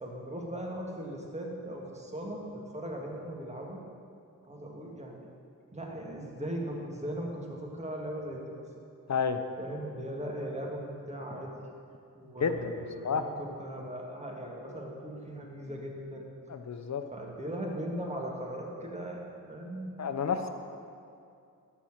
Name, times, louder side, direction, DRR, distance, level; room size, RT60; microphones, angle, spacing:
voice 1, 0.0-3.8 4.4-5.3 5.7-8.6 9.6-11.5 12.2-16.2 17.1-19.9 20.3-20.5, right 1 dB, 20° right, -1 dB, 1.7 m, -38 dB
voice 2, 12.4-12.8 13.0-13.2 16.5-17.0 20.0-20.4, left 6 dB, 50° left, 8 dB, 0.7 m, -29 dB
13.0 x 4.4 x 7.3 m, 2.5 s
wide cardioid pair, 85°, 35 cm